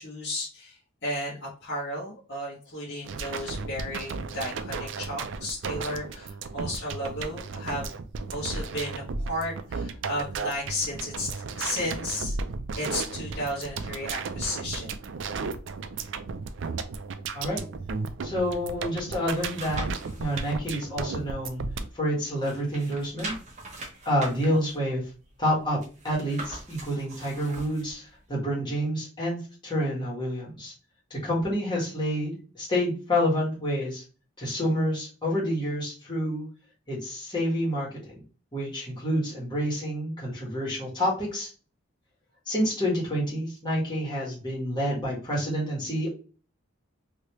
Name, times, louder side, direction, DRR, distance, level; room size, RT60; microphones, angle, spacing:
voice 1, 0.0-8.0 8.3-12.4 12.7-14.9, left 1 dB, 55° left, -7 dB, 1.1 m, -34 dB
sound 1, 3.0-21.9, right 4 dB, 60° right, 0.4 m, -34 dB
voice 2, 18.2-19.9 20.2-21.6 21.9-23.3 24.0-25.0 25.4-25.8 26.0-29.4 29.6-30.7 31.1-34.0 34.4-36.5 36.9-37.9 38.5-41.5 42.5-46.1, equal, 20° left, -5 dB, 1.5 m, -28 dB
sound 2, 18.9-20.5 21.0-22.1 22.4-27.9 28.4-28.5, right 2 dB, 35° right, 0.9 m, -41 dB
3.3 x 2.8 x 2.9 m, 0.35 s
head